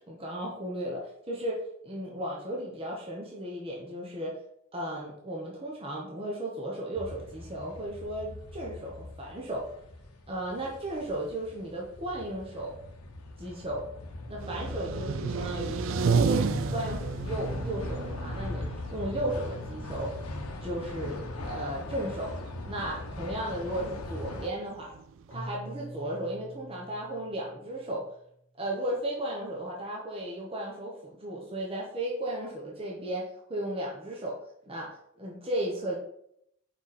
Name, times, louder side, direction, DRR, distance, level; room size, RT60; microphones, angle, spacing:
voice 1, 0.1-1.6 1.8-4.4 4.7-9.7 10.3-12.8 13.4-13.9 14.3-20.1 20.6-22.3 22.6-24.9 25.3-28.0 28.6-34.4 34.7-36.0, right 1 dB, 25° right, -3 dB, 0.9 m, -35 dB
sound 1, 6.9-24.5, left 2 dB, 90° left, 0.8 m, -39 dB
sound 2, 14.4-25.4, right 5 dB, 60° right, 0.3 m, -33 dB
Keyboard (musical), 25.3-28.3, right 1 dB, 55° left, 1.0 m, -45 dB
4.9 x 4.6 x 4.2 m, 0.73 s
head